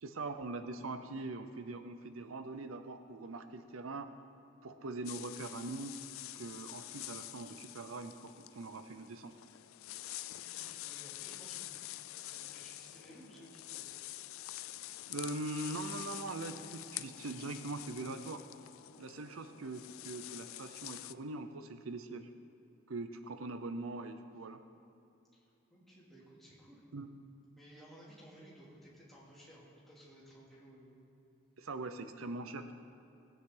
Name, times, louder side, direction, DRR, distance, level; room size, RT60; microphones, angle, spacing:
voice 1, 0.0-4.1 4.6-5.9 6.3-9.4 15.1-18.4 19.0-22.3 22.9-24.6 26.9-27.1 31.6-32.7, right 2 dB, 90° right, 9 dB, 0.7 m, -42 dB
sound 1, 5.1-21.1, left 15 dB, 85° left, 0.3 m, -47 dB
voice 2, 9.9-14.0 25.3-26.8 27.5-31.0, equal, ahead, -7 dB, 2.7 m, -57 dB
19.0 x 8.9 x 3.9 m, 2.7 s
head